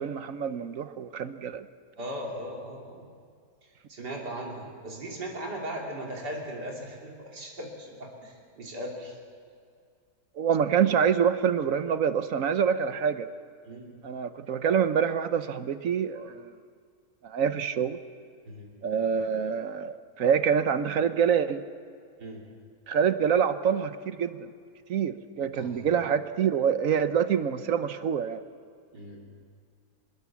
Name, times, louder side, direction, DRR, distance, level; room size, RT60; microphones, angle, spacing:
voice 1, 0.0-1.7 10.4-13.3 14.0-16.5 17.2-18.0 18.8-21.6 22.9-24.5 24.9-28.4, right 7 dB, 60° right, 11 dB, 1.2 m, -26 dB
voice 2, 2.0-3.1 3.6-9.2 13.7-13.9 16.2-16.3 18.5-18.8 22.2-22.5 25.5-25.8 28.9-29.3, right 1 dB, 90° right, -1 dB, 3.7 m, -38 dB
24.0 x 20.5 x 7.2 m, 2.2 s
omnidirectional pair, 1.8 m